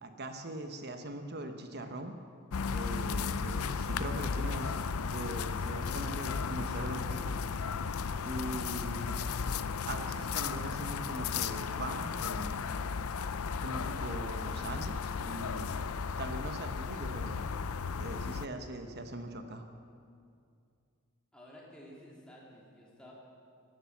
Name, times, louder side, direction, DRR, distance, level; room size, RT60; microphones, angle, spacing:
voice 1, 0.0-2.1 2.7-4.8 5.1-7.4 8.2-9.2 9.9-12.6 13.6-15.8 16.2-17.5 18.0-19.7, right 1 dB, 50° right, 6 dB, 1.2 m, -41 dB
sound 1, 2.5-18.5, left 5 dB, 80° left, 0.6 m, -35 dB
voice 2, 21.3-23.1, equal, 5° left, -5 dB, 2.9 m, -52 dB
17.0 x 12.0 x 7.3 m, 2.3 s
head